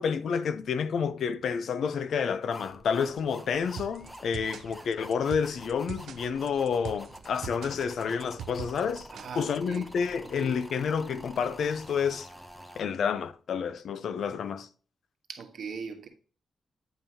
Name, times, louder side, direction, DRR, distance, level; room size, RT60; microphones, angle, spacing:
voice 1, 0.0-9.1 9.4-12.3 12.8-14.7, left 6 dB, 65° left, 0.5 m, -29 dB
sound 1, 2.5-12.8, equal, 5° left, 0.8 m, -48 dB
sound 2, 3.8-9.8, right 9 dB, 75° right, 0.4 m, -43 dB
voice 2, 9.1-9.9 10.2-10.6 15.3-16.1, right 5 dB, 60° right, 1.3 m, -40 dB
8.9 x 5.5 x 2.8 m
wide cardioid pair, 165°, 0 cm